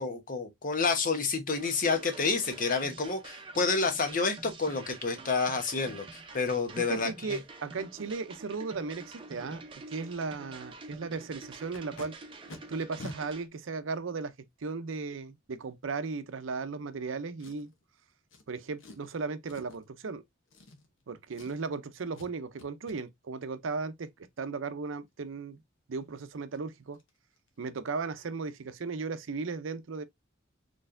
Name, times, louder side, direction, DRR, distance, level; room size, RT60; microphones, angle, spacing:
voice 1, 0.0-7.4, left 4 dB, 45° left, 1.0 m, -29 dB
sound 1, 1.6-13.5, right 3 dB, 25° right, 0.7 m, -47 dB
voice 2, 6.8-9.6 9.9-12.1 12.7-14.3 14.6-17.7 18.5-20.2 21.1-25.6 25.9-27.0 27.6-30.0, right 4 dB, 80° right, 0.6 m, -36 dB
Packing tape duct tape, 11.5-12.1 12.5-12.6 13.0-13.2 13.9-14.0 17.4-17.8 18.3-18.4 18.8-19.1 19.5-19.8 20.5-21.0 21.3-21.8 22.1-22.3 22.6-23.0 26.0-26.1 26.4-26.6 26.9-27.1 27.4-27.6 27.9-28.0, left 2 dB, 75° left, 1.0 m, -47 dB
4.1 x 3.2 x 2.5 m
head